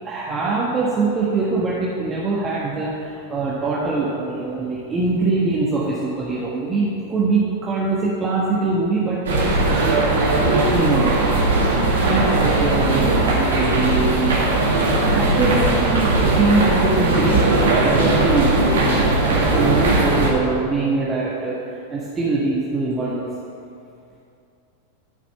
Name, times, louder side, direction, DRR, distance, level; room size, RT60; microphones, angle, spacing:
voice 1, 0.0-11.4 12.1-14.4 15.1-18.5 19.2-23.3, right 3 dB, 20° right, -6 dB, 1.5 m, -23 dB
sound 1, 9.3-20.3, right 2 dB, 65° right, 1.8 m, -18 dB
12.5 x 6.0 x 5.6 m, 2.5 s
figure-of-eight pair, 90°, 0 cm